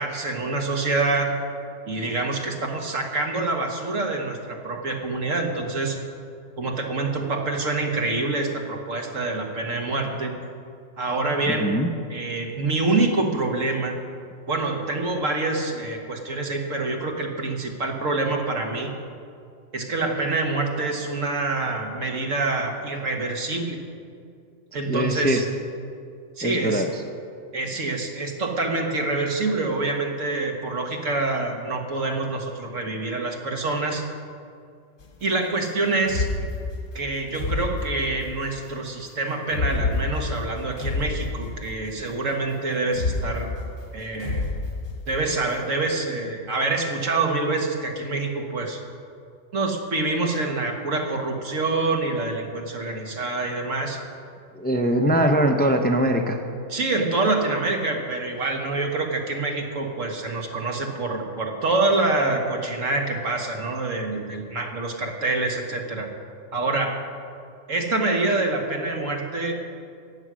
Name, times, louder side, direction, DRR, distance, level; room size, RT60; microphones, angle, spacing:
voice 1, 0.0-1.4 1.9-6.0 6.6-10.4 11.0-11.8 12.1-14.0 14.5-18.9 19.7-23.8 24.7-25.4 26.4-26.8 27.5-34.0 35.2-36.3 37.0-43.5 43.9-44.4 45.1-48.8 49.5-54.0 56.7-66.1 66.5-67.0 67.7-69.6, right 3 dB, 80° right, 2 dB, 1.9 m, -26 dB
voice 2, 11.5-11.9 24.9-25.5 26.4-27.0 54.6-56.4, right 1 dB, 10° left, 4 dB, 0.6 m, -22 dB
sound 1, 35.0-35.1 36.0-38.6 39.4-42.0 42.3-42.4 42.9-45.5, left 3 dB, 75° left, 1.6 m, -29 dB
14.5 x 9.4 x 6.2 m, 2.3 s
omnidirectional pair, 1.3 m